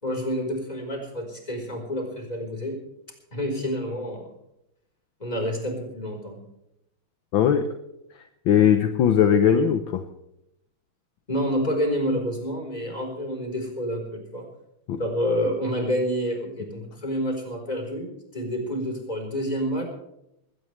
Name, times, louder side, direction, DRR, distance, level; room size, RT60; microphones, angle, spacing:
voice 1, 0.0-2.8 3.3-4.3 5.2-6.4 11.3-14.5 15.0-19.9, equal, 15° left, 2 dB, 4.4 m, -28 dB
voice 2, 7.3-7.7 8.4-10.0 14.9-15.0, left 8 dB, 70° left, 8 dB, 1.6 m, -19 dB
20.0 x 17.5 x 3.3 m, 0.83 s
omnidirectional pair, 2.4 m